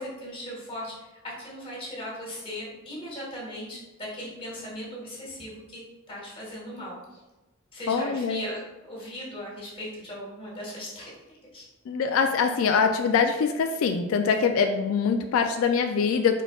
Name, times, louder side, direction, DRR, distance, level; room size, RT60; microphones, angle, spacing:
voice 1, 0.0-7.2 7.7-11.6, equal, 25° left, -5 dB, 1.5 m, -38 dB
voice 2, 7.9-8.5 11.9-16.4, left 5 dB, 90° left, 6 dB, 0.3 m, -24 dB
4.2 x 4.1 x 2.3 m, 1.1 s
head